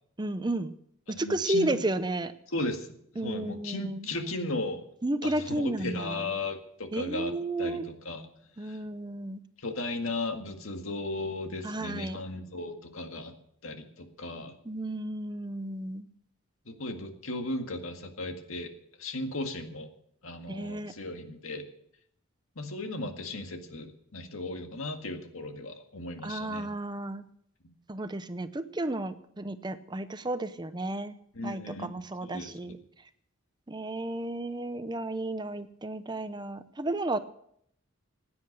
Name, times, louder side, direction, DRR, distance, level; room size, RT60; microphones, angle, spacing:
voice 1, 0.2-0.7 1.1-2.3 3.2-4.0 5.0-6.2 6.9-7.8 8.6-9.4 11.6-12.2 14.7-16.1 20.5-20.9 26.2-27.3 27.9-31.1 31.4-32.7 33.7-37.2, right 1 dB, 20° right, 11 dB, 0.6 m, -32 dB
voice 2, 1.1-1.8 2.5-2.9 3.2-4.8 5.2-8.3 8.6-8.8 9.6-13.4 13.6-14.5 16.7-18.7 19.0-19.9 20.2-21.7 22.6-26.7 27.6-27.7 31.3-31.9 32.2-32.8, left 2 dB, 85° left, 5 dB, 1.9 m, -36 dB
16.0 x 9.7 x 6.6 m, 0.71 s
head